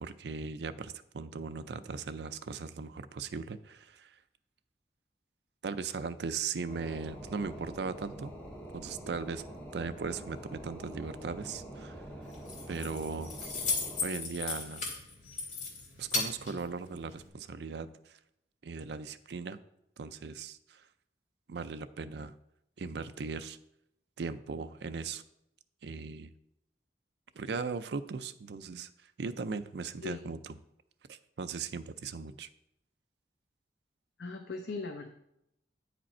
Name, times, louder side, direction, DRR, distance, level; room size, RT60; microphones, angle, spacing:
voice 1, 0.0-4.2 5.6-8.3 8.7-9.4 9.7-12.0 12.7-13.6 14.0-14.9 16.0-18.2 18.6-19.6 20.0-20.9 21.5-22.3 22.8-23.6 24.2-25.2 25.8-26.3 27.4-28.9 29.2-30.4 31.1-32.5, right 5 dB, 70° right, 12 dB, 0.4 m, -38 dB
sound 1, 6.7-14.0, right 1 dB, 10° left, 1.7 m, -46 dB
Keys jangling, 12.2-17.3, left 3 dB, 45° left, 1.8 m, -37 dB
voice 2, 34.2-35.1, left 3 dB, 75° left, 4 dB, 0.6 m, -39 dB
9.1 x 5.1 x 4.3 m, 0.80 s
head